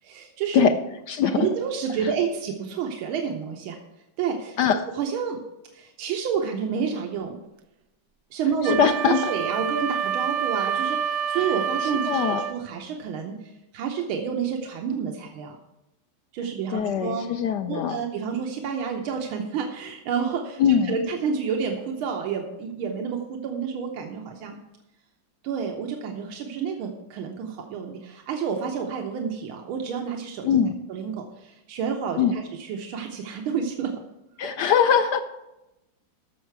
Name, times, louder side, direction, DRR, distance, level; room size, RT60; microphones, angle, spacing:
voice 1, 0.0-0.7 1.3-3.8 4.2-4.6 5.0-5.4 5.7-7.4 8.3-13.4 13.7-15.6 16.3-17.3 17.7-24.6 25.4-30.5 30.9-33.9 34.4-34.5, right 6 dB, 90° right, 2 dB, 1.7 m, -29 dB
voice 2, 1.1-1.4 4.6-4.8 8.6-9.3 12.1-12.4 16.7-18.0 20.6-21.0 30.4-30.8 32.2-32.4 34.4-35.2, left 7 dB, 70° left, 8 dB, 1.0 m, -21 dB
Wind instrument woodwind instrument, 8.6-12.6, right 8 dB, 70° right, 1.0 m, -27 dB
14.0 x 6.4 x 4.6 m, 0.93 s
omnidirectional pair, 2.2 m